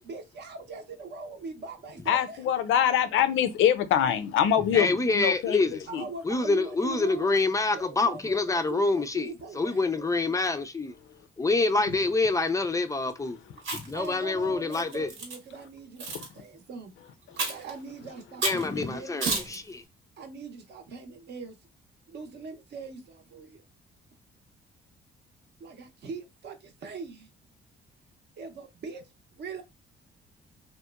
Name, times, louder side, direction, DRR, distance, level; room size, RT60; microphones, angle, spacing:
voice 1, 0.1-2.4 5.9-7.4 7.7-8.2 8.5-10.3 13.9-16.9 17.4-19.4 20.2-21.6 22.1-23.6 25.6-27.3 28.4-29.0 29.4-29.6, right 4 dB, 60° right, 0.6 m, -41 dB
voice 2, 2.1-5.6 5.9-6.0 16.1-16.3, left 9 dB, 80° left, 0.4 m, -24 dB
voice 3, 4.7-5.9 6.2-10.9 11.4-13.4 13.7-15.1 18.4-19.8, left 3 dB, 15° left, 0.3 m, -26 dB
Chewing mastication, 13.6-14.1 14.7-15.4 16.0-16.3 17.4-17.7 18.4-18.7 19.2-19.6, right 3 dB, 80° right, 1.0 m, -31 dB
2.9 x 2.1 x 2.2 m
cardioid pair, 90°, 20 cm